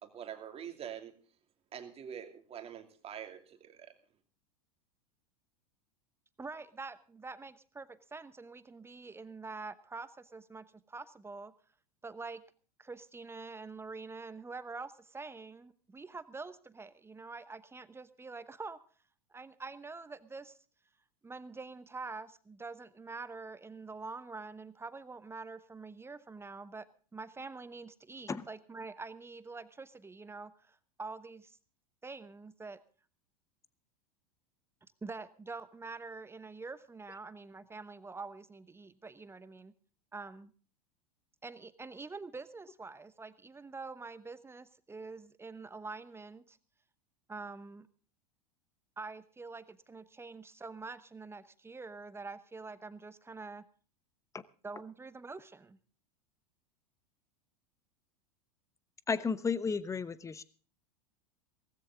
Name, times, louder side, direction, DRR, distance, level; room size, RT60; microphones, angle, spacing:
voice 1, 0.0-1.1 1.7-3.9, right 9 dB, 30° right, 6 dB, 2.8 m, -45 dB
voice 2, 6.4-11.5 12.0-12.4 12.8-18.8 19.3-20.6 21.2-26.9 27.1-31.6 32.0-32.8 35.0-39.7 40.1-40.5 41.4-46.6 47.3-47.9 49.0-53.7 54.6-55.8, right 4 dB, 15° right, 14 dB, 1.0 m, -46 dB
voice 3, 59.1-60.4, left 5 dB, 15° left, 17 dB, 1.0 m, -33 dB
17.5 x 15.5 x 3.8 m, 0.40 s
hypercardioid pair, 90°, 19 cm